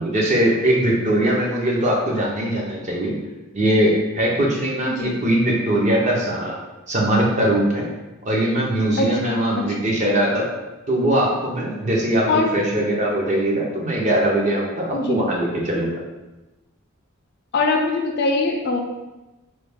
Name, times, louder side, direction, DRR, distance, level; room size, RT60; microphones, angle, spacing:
voice 1, 0.0-3.1 3.5-6.6 6.9-7.9 8.2-10.5 10.9-15.9, right 1 dB, 30° right, -2 dB, 0.6 m, -21 dB
voice 2, 4.9-5.2 9.0-9.9 12.3-12.5 14.9-15.2 17.5-18.8, left 3 dB, 45° left, 2 dB, 0.3 m, -22 dB
3.2 x 2.3 x 3.3 m, 1.1 s
head